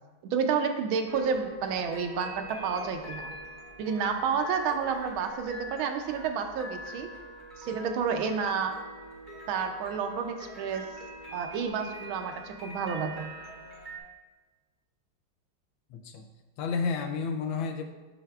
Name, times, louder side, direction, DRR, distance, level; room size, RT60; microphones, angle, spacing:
voice 1, 0.2-3.3 3.8-7.1 7.6-8.8 9.5-10.9 11.3-13.3, right 6 dB, 80° right, 6 dB, 1.4 m, -30 dB
sound 1, 1.1-14.0, right 1 dB, 40° right, 0.7 m, -44 dB
voice 2, 15.9-16.3 16.6-17.8, left 5 dB, 75° left, 5 dB, 1.3 m, -31 dB
7.8 x 5.6 x 2.3 m, 1.3 s
omnidirectional pair, 2.3 m